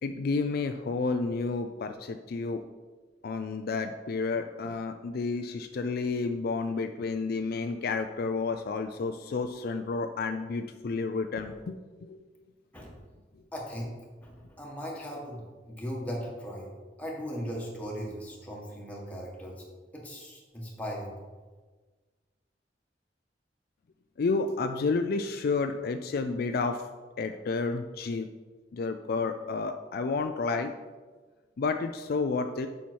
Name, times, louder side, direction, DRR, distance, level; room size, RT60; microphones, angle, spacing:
voice 1, 0.0-2.6 3.2-12.2 24.2-26.9 27.2-28.3 28.7-30.7 31.6-32.7, left 4 dB, 60° left, 7 dB, 0.4 m, -30 dB
voice 2, 13.5-13.9 14.2-16.7 17.0-19.6 19.9-21.1, equal, 10° left, -3 dB, 1.7 m, -38 dB
7.3 x 5.6 x 4.6 m, 1.4 s
head